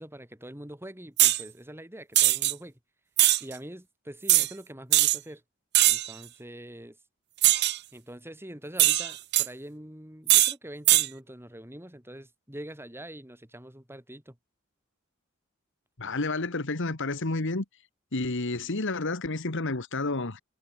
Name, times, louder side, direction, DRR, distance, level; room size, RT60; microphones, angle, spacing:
voice 1, 0.0-2.7 3.4-5.4 5.9-7.0 7.9-14.4, right 1 dB, 10° right, 7.0 m, -44 dB
sound 1, 1.2-1.4 2.2-2.5 3.2-3.4 4.3-4.5 4.9-5.2 5.7-6.1 7.4-7.8 8.8-9.5 10.3-10.5 10.9-11.1, right 16 dB, 55° right, 0.8 m, -20 dB
voice 2, 16.0-17.7 18.1-20.4, left 2 dB, 65° left, 1.8 m, -30 dB
head